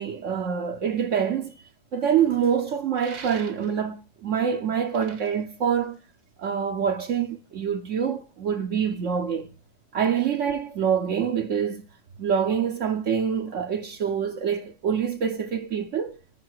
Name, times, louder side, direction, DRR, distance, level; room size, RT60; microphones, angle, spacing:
voice 1, 0.0-1.5 1.9-6.0 6.4-9.5 9.9-11.8 12.2-16.2, right 7 dB, 65° right, 1.1 m, -26 dB
sound 1, 3.0-4.0 4.7-6.4, right 5 dB, 85° right, 1.8 m, -44 dB
9.7 x 5.2 x 4.7 m
omnidirectional pair, 1.4 m